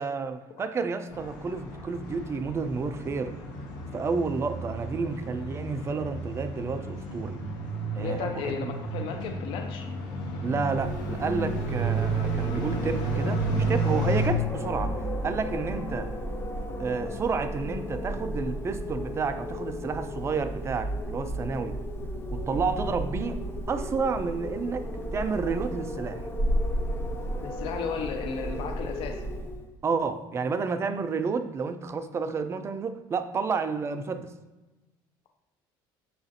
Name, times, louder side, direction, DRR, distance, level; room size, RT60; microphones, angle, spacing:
voice 1, 0.0-3.4 3.9-7.4 7.9-8.7 10.4-16.1 16.8-21.8 22.3-23.4 23.7-26.2 29.8-34.3, right 4 dB, 25° right, 10 dB, 0.4 m, -30 dB
sound 1, 1.1-14.3, right 2 dB, 90° left, 1.3 m, -32 dB
voice 2, 8.0-9.9 27.4-29.2, left 5 dB, 65° left, 4 dB, 0.6 m, -34 dB
Wind, 10.7-29.7, equal, 25° left, 0.6 m, -33 dB
6.2 x 2.5 x 2.7 m, 1.1 s
supercardioid pair, 100°, 10 cm